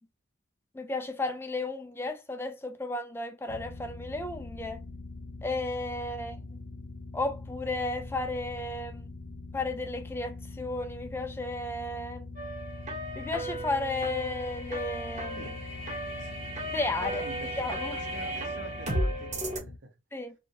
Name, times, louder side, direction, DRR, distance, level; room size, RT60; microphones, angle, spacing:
voice 1, 0.7-4.8 5.4-6.4 7.1-9.1 9.5-12.2 13.2-15.4 16.7-17.3 17.6-18.0 20.1-20.3, left 2 dB, 10° left, 0.4 m, -33 dB
sound 1, 3.5-19.8, left 3 dB, 75° left, 0.5 m, -43 dB
sound 2, 12.4-19.6, right 1 dB, 35° right, 1.0 m, -35 dB
voice 2, 17.0-17.5 18.1-19.9, right 2 dB, 60° right, 0.8 m, -46 dB
2.7 x 2.5 x 2.8 m
head